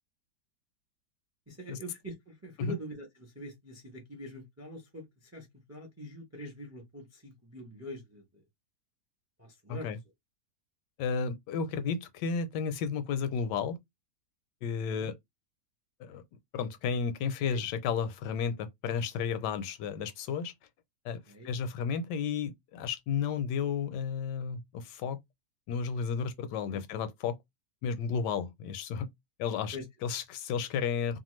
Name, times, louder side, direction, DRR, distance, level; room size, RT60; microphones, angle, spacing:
voice 1, 1.5-5.0 5.3-8.2 9.4-9.9 14.7-15.1 17.4-17.6 21.3-21.5 26.7-26.8 29.7-29.8, equal, 20° right, 0.4 m, -44 dB
voice 2, 11.0-13.8 14.6-15.1 16.0-16.2 16.5-20.5 21.0-25.2 25.7-27.4 27.8-29.1 29.4-31.2, left 6 dB, 85° left, 1.2 m, -33 dB
2.8 x 2.3 x 3.0 m
omnidirectional pair, 1.8 m